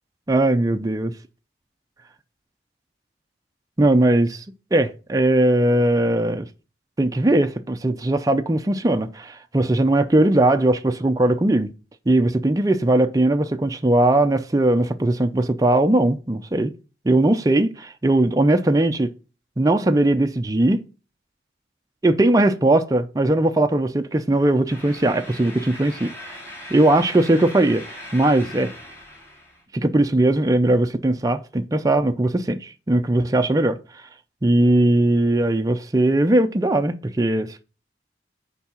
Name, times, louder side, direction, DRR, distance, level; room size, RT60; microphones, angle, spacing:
voice 1, 0.3-1.1 3.8-4.4 4.7-6.5 7.0-11.7 12.1-16.7 17.1-19.1 19.6-20.8 22.0-26.4 26.7-27.8 28.1-28.7 29.7-33.8 34.4-37.6, right 1 dB, 20° right, 0.4 m, -19 dB
sound 1, 24.7-29.6, left 1 dB, 15° left, 2.3 m, -40 dB
6.9 x 4.6 x 5.6 m
head